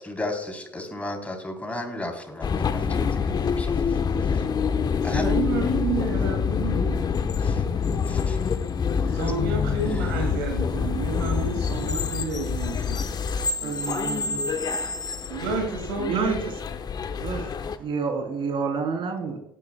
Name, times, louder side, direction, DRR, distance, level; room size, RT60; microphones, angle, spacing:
voice 1, 0.0-4.0 5.0-5.8 7.4-7.6 8.1-8.4 9.1-9.2 9.9-10.0, left 2 dB, 10° left, 3 dB, 3.5 m, -34 dB
sound 1, 2.4-17.8, left 6 dB, 40° left, 1.0 m, -26 dB
voice 2, 5.1-7.1 9.1-13.2 15.3-16.5, right 4 dB, 75° right, 3 dB, 2.2 m, -30 dB
voice 3, 13.6-14.5 16.0-16.5 17.1-19.4, right 4 dB, 50° right, 4 dB, 3.3 m, -29 dB
18.5 x 10.5 x 2.3 m, 0.80 s
hypercardioid pair, 60°, 11 cm